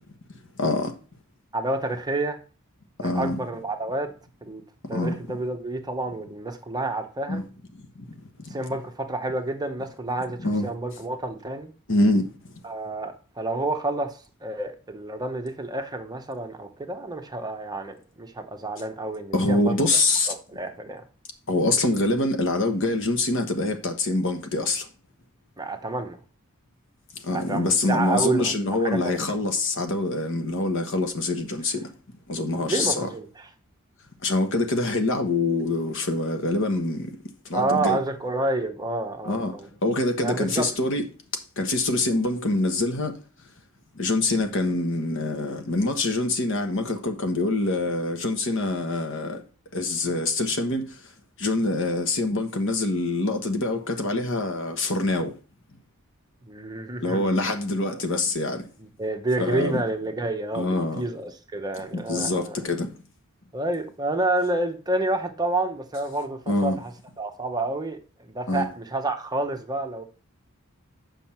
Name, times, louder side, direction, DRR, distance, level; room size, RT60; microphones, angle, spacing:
voice 1, 0.6-0.9 3.0-3.4 4.9-5.2 7.3-7.4 7.9-8.1 8.4-8.6 10.4-10.7 11.9-12.5 19.3-20.3 21.5-24.9 27.2-31.9 32.3-33.1 34.2-37.1 37.4-38.0 39.2-41.0 41.3-43.2 44.0-49.4 49.7-51.0 51.4-55.3 57.0-58.7 59.4-59.8 60.5-61.0 61.9-62.9 66.5-66.8 68.5-68.7, left 2 dB, 60° left, 1.2 m, -25 dB
voice 2, 1.5-2.4 3.0-4.1 4.4-4.6 4.9-7.4 8.5-11.7 12.6-19.8 20.3-21.0 25.6-26.2 27.3-29.2 32.6-33.5 37.5-39.7 40.2-40.7 56.5-57.5 58.8-62.6 63.5-66.9 67.2-68.0 68.3-70.0, right 2 dB, 20° right, 0.9 m, -29 dB
7.7 x 5.5 x 4.3 m
head